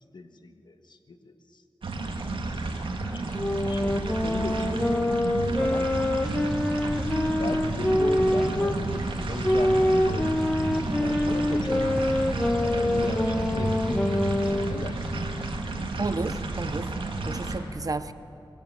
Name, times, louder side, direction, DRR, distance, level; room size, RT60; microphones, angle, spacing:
voice 1, 0.0-1.6 2.1-2.7 3.1-4.8 5.5-5.9 7.4-10.2 10.6-15.1, left 3 dB, 60° left, 7 dB, 1.5 m, -38 dB
sound 1, 1.8-17.6, right 2 dB, 85° right, 2.1 m, -32 dB
sound 2, 3.3-8.8 9.4-14.8, left 1 dB, 15° left, 0.9 m, -25 dB
sound 3, 6.2-15.5, equal, 5° right, 3.6 m, -36 dB
voice 2, 16.0-16.9 17.2-18.1, right 3 dB, 45° right, 12 dB, 0.7 m, -31 dB
21.5 x 16.0 x 7.7 m, 2.9 s
wide cardioid pair, 90°, 9 cm